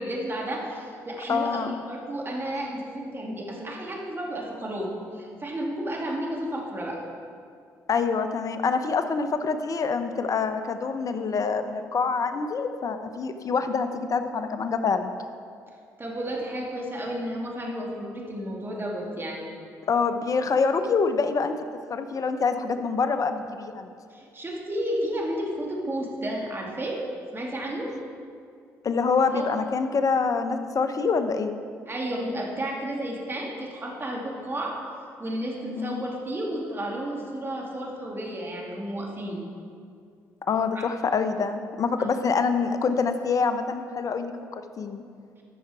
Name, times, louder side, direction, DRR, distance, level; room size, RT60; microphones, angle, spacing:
voice 1, 0.0-1.6 1.9-7.0 16.0-19.4 24.1-27.0 27.3-27.9 29.3-29.5 31.9-34.8 35.2-39.4 40.7-40.8 42.0-42.1, right 1 dB, 30° right, -2 dB, 2.5 m, -32 dB
voice 2, 1.3-1.7 7.9-15.1 19.9-21.5 21.9-23.9 28.8-31.6 35.8-36.0 40.5-45.0, left 5 dB, 50° left, 9 dB, 0.8 m, -26 dB
13.5 x 6.0 x 4.7 m, 2.3 s
hypercardioid pair, 55°, 7 cm